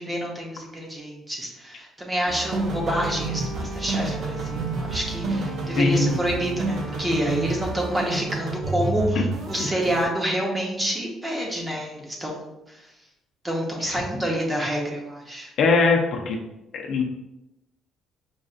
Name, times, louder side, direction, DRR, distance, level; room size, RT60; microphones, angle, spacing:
voice 1, 0.0-12.4 12.7-12.8 13.4-15.5, equal, 15° right, -1 dB, 0.8 m, -28 dB
sound 1, 2.3-10.0, right 3 dB, 65° right, 0.6 m, -29 dB
voice 2, 5.8-6.2 13.9-14.0 15.6-16.4 16.7-17.0, left 4 dB, 65° left, 1 dB, 0.6 m, -21 dB
5.4 x 2.5 x 2.5 m, 0.89 s
cardioid pair, 130°, 0 cm